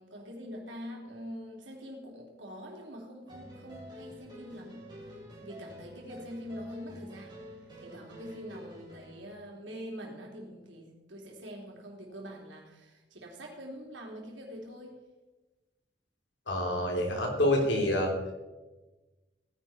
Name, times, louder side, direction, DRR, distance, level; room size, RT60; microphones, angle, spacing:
voice 1, 0.0-4.9 5.4-7.5 7.8-15.0, equal, 90° right, 0 dB, 3.5 m, -44 dB
sound 1, 3.3-9.3, equal, 25° right, 3.7 m, -49 dB
voice 2, 16.5-18.1, left 1 dB, 80° left, 1 dB, 3.2 m, -27 dB
17.0 x 10.5 x 4.4 m, 1.1 s
head